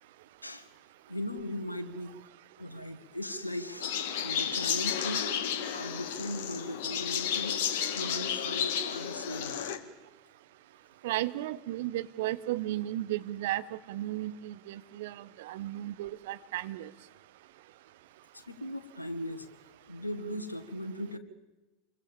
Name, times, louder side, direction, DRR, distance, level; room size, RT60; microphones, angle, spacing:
voice 1, 1.1-2.1 2.6-5.3 5.7-7.6 7.9-9.6 18.3-19.5 19.9-21.2, left 1 dB, 90° left, 10 dB, 2.0 m, -38 dB
sound 1, 3.8-9.8, left 8 dB, 60° left, 2.1 m, -32 dB
voice 2, 11.0-16.9, right 15 dB, 60° right, 14 dB, 1.2 m, -34 dB
28.0 x 23.5 x 7.3 m, 1.1 s
figure-of-eight pair, 80°, 0 cm